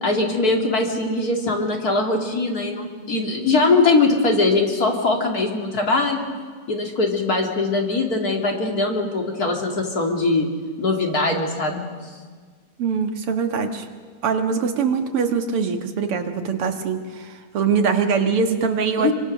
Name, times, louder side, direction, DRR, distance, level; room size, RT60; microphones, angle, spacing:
voice 1, 0.0-6.3 6.7-10.5 10.8-11.8 19.0-19.1, left 3 dB, 45° left, 1 dB, 2.9 m, -21 dB
voice 2, 12.8-13.9 14.2-19.1, right 5 dB, 90° right, 5 dB, 2.6 m, -23 dB
27.0 x 24.0 x 6.5 m, 1.6 s
omnidirectional pair, 2.4 m